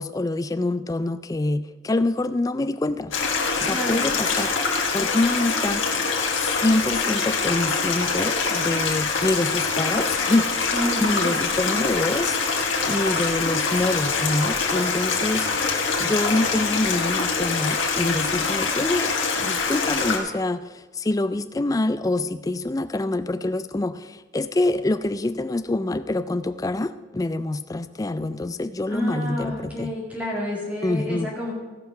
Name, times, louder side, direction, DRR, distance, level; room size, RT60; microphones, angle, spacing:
voice 1, 0.0-3.1 3.6-4.5 4.9-6.1 6.3-10.8 11.0-12.5 12.9-15.4 16.0-29.9 30.8-31.3, left 2 dB, 20° left, 12 dB, 0.3 m, -26 dB
Stream, 3.1-20.2, left 4 dB, 80° left, 1.5 m, -24 dB
voice 2, 3.7-4.1 10.7-11.4 28.9-31.5, left 1 dB, 5° right, -4 dB, 2.2 m, -30 dB
15.5 x 5.7 x 5.5 m, 1.3 s
head